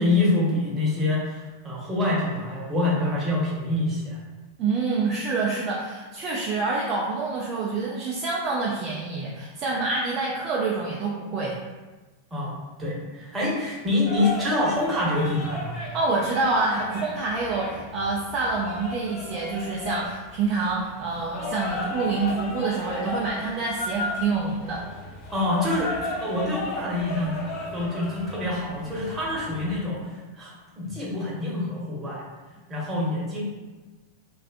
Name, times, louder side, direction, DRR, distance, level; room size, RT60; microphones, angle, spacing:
voice 1, 0.0-4.2 12.3-12.5 12.8-15.8 25.3-25.9 26.2-27.4 27.7-32.2 32.7-33.4, left 2 dB, 15° right, -6 dB, 0.8 m, -26 dB
voice 2, 4.6-11.6 15.9-24.8, right 3 dB, 35° right, -5 dB, 0.3 m, -27 dB
sound 1, 14.1-29.8, left 2 dB, 40° left, 0.5 m, -35 dB
2.4 x 2.3 x 2.4 m, 1.2 s
figure-of-eight pair, 90°, 0 cm